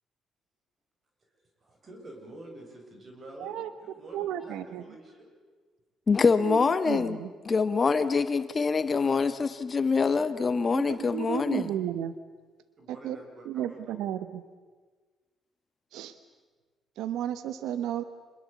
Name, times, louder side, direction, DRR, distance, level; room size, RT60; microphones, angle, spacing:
voice 1, 1.6-5.3 12.8-14.0, right 1 dB, 40° right, 3 dB, 7.4 m, -48 dB
voice 2, 3.4-3.7 4.1-4.8 6.4-7.3 10.7-12.1 13.0-13.2 13.5-14.4 15.9-16.1 17.0-18.0, right 11 dB, 90° right, 12 dB, 1.1 m, -33 dB
voice 3, 6.1-7.2 7.4-11.7, left 4 dB, 35° left, 11 dB, 1.5 m, -25 dB
27.5 x 21.5 x 8.4 m, 1.4 s
cardioid pair, 90°, 0 cm